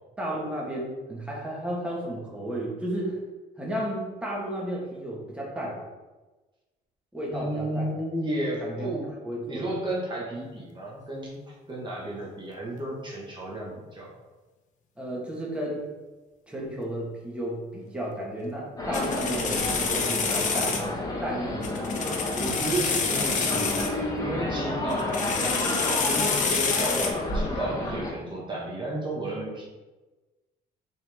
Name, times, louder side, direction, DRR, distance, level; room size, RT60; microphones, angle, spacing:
voice 1, 0.2-3.2 3.6-5.8 7.1-8.0 8.6-9.0 9.2-9.7 15.0-15.8 16.5-20.8 21.2-21.7, right 1 dB, 5° right, -4 dB, 1.5 m, -33 dB
voice 2, 7.3-9.1 9.5-14.2 22.4-29.7, right 1 dB, 25° right, -4 dB, 1.5 m, -33 dB
sound 1, 18.8-28.1, left 2 dB, 20° left, 1.3 m, -30 dB
sound 2, 18.9-20.9 21.6-23.9 24.9-27.1, left 5 dB, 45° left, 1.0 m, -28 dB
6.8 x 4.0 x 3.5 m, 1.2 s
cardioid pair, 110°, 17 cm